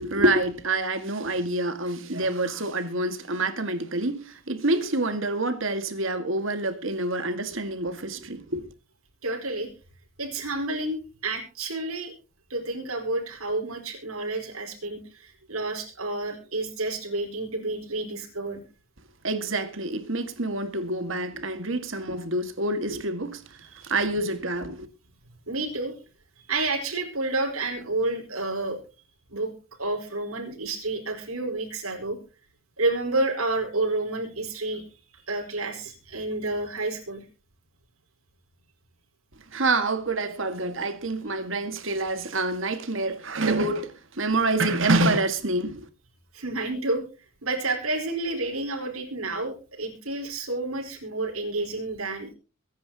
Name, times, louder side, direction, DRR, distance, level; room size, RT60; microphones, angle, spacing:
voice 1, 0.0-8.7 19.2-23.4 23.8-24.9 39.5-45.9, right 2 dB, 65° right, 1.9 m, -27 dB
voice 2, 9.2-9.7 10.2-12.1 12.5-18.6 23.7-23.8 25.5-25.9 26.5-28.8 29.3-29.5 29.8-32.2 32.8-34.8 35.3-37.2 46.3-47.0 47.4-52.3, right 2 dB, 90° right, 4.7 m, -30 dB
23.5 x 10.0 x 2.9 m
head